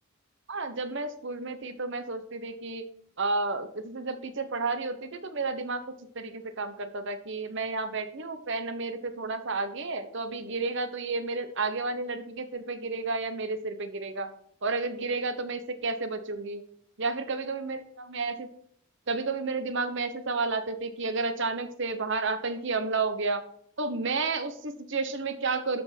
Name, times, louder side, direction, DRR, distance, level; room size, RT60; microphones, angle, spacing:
voice 1, 0.5-2.8 3.2-5.8 6.1-14.3 14.6-16.6 17.0-17.8 18.1-18.5 19.1-23.4 23.8-25.8, right 3 dB, 60° right, 9 dB, 1.1 m, -31 dB
12.5 x 5.3 x 6.0 m, 0.65 s
head